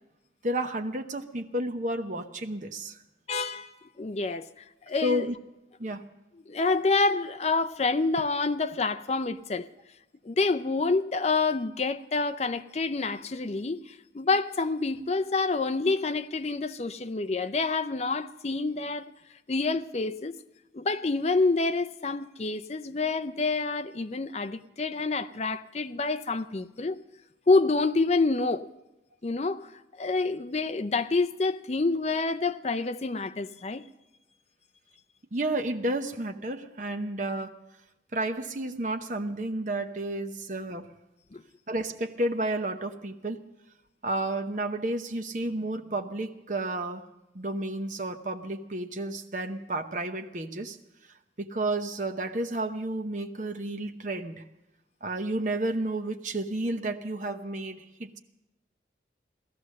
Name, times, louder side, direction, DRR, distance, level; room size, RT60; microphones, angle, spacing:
voice 1, 0.4-2.9 5.0-5.3 5.8-6.0 35.3-37.6 38.1-40.9 41.7-43.4 44.0-47.1 47.3-50.8 51.4-54.4 55.0-58.2, right 1 dB, 45° right, 0.9 m, -31 dB
voice 2, 3.3-3.7 4.0-4.5 4.9-5.3 6.5-9.7 10.2-19.1 19.5-20.4 20.7-27.0 27.5-28.7 29.2-29.7 30.0-33.8 41.3-41.4, left 3 dB, 35° left, 0.5 m, -27 dB
17.0 x 13.0 x 6.4 m
head